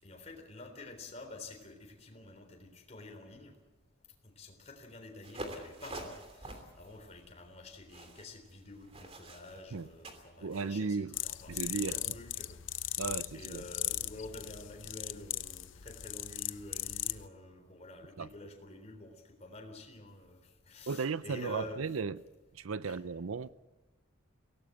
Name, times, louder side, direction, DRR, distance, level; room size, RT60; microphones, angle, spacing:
voice 1, 0.0-3.6 4.2-21.8 22.8-23.0, left 2 dB, 35° left, 3.6 m, -49 dB
sound 1, 5.2-10.7, right 1 dB, 30° right, 3.0 m, -47 dB
voice 2, 10.4-11.2 11.5-12.2 13.0-13.6 18.2-18.3 20.9-22.2 22.5-23.5, right 5 dB, 90° right, 0.6 m, -35 dB
sound 2, 11.1-17.3, left 14 dB, 65° left, 0.7 m, -38 dB
23.0 x 17.5 x 7.8 m
head